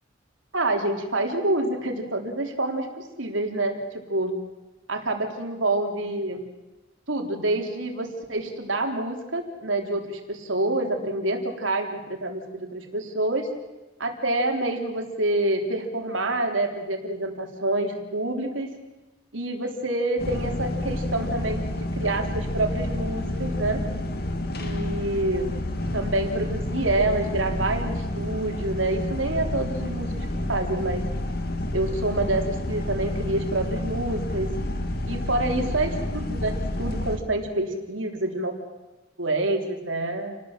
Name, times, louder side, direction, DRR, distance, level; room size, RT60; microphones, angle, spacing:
voice 1, 0.5-4.4 4.9-6.4 7.1-13.5 14.0-18.7 19.3-23.8 24.6-25.5 25.9-31.1 31.7-34.5 35.1-38.6 39.2-40.4, right 2 dB, 85° right, 3 dB, 3.7 m, -27 dB
sound 1, 20.2-37.2, left 1 dB, 55° left, 2.3 m, -29 dB
28.5 x 19.0 x 7.6 m, 1.1 s
head